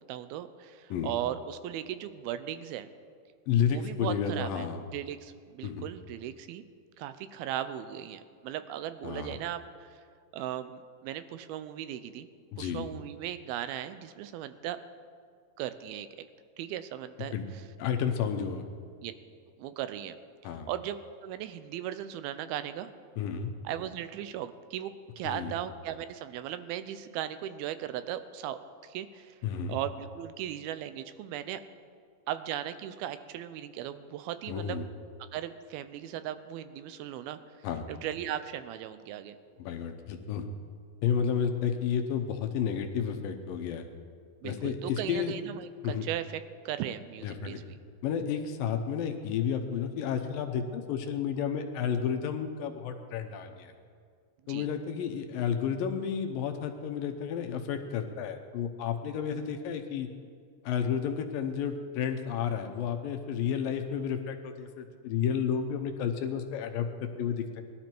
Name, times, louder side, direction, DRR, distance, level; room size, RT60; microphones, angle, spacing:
voice 1, 0.1-2.9 3.6-4.7 4.9-6.6 7.0-10.0 10.3-12.3 12.6-14.8 15.6-16.2 16.6-17.6 19.0-19.1 19.6-20.2 20.4-22.9 23.6-29.4 29.7-31.6 32.3-34.8 35.3-37.4 37.9-39.4 44.4-47.8 54.4-54.7, right 11 dB, 80° right, 11 dB, 2.5 m, -37 dB
voice 2, 3.5-4.8 5.6-5.9 9.0-9.3 12.5-12.9 17.3-17.5 17.8-18.7 20.4-20.7 23.2-23.5 25.2-25.5 29.4-29.8 34.5-34.9 37.6-37.9 39.6-40.4 41.0-43.8 44.4-45.3 45.8-46.1 47.2-47.6 48.0-53.7 54.5-60.1 60.6-67.6, left 7 dB, 75° left, 5 dB, 2.4 m, -31 dB
20.0 x 12.5 x 4.5 m, 2.1 s
omnidirectional pair, 4.4 m